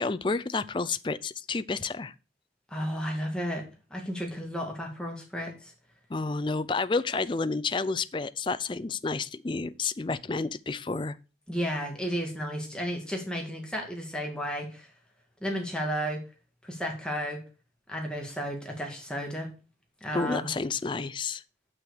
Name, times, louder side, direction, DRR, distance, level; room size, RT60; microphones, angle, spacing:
voice 1, 0.0-2.1 6.1-11.2 20.1-21.4, left 4 dB, 25° left, 0.4 m, -30 dB
voice 2, 2.7-3.6 3.9-5.7 11.5-14.9 15.4-16.2 16.6-17.4 17.9-19.5 20.0-20.5, equal, 5° left, 2.0 m, -33 dB
7.8 x 6.1 x 6.4 m
head